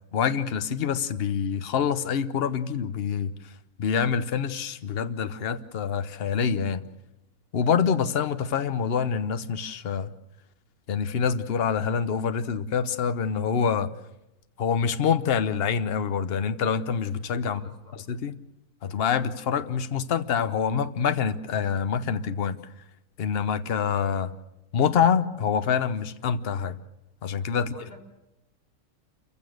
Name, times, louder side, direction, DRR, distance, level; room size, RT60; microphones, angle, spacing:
voice 1, 0.1-3.3 3.8-6.9 7.5-10.1 10.9-13.9 14.6-17.6 18.1-18.3 18.8-22.6 23.2-24.3 24.7-26.8 27.2-27.7, left 7 dB, 45° left, 11 dB, 1.0 m, -26 dB
voice 2, 17.4-18.0 27.6-28.0, left 1 dB, 30° left, -1 dB, 4.1 m, -47 dB
28.0 x 15.5 x 6.5 m, 0.91 s
omnidirectional pair, 1.6 m